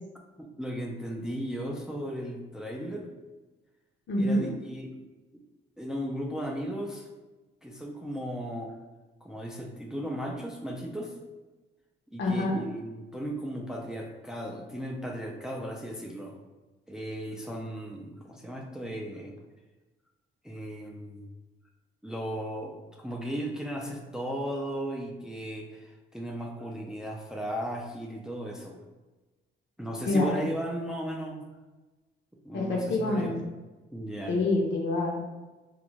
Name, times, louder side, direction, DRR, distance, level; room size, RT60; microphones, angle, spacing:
voice 1, 0.4-3.1 4.2-4.9 5.8-7.1 7.6-8.7 9.2-11.1 12.1-16.4 16.9-19.3 20.4-21.3 22.0-28.7 29.8-31.4 32.4-33.4 33.9-34.3, equal, 5° right, 0 dB, 0.3 m, -36 dB
voice 2, 4.1-4.5 12.2-12.6 30.1-30.3 32.5-33.3 34.3-35.2, left 2 dB, 65° left, -1 dB, 0.7 m, -26 dB
2.5 x 2.4 x 3.0 m, 1.2 s
cardioid pair, 90°, 20 cm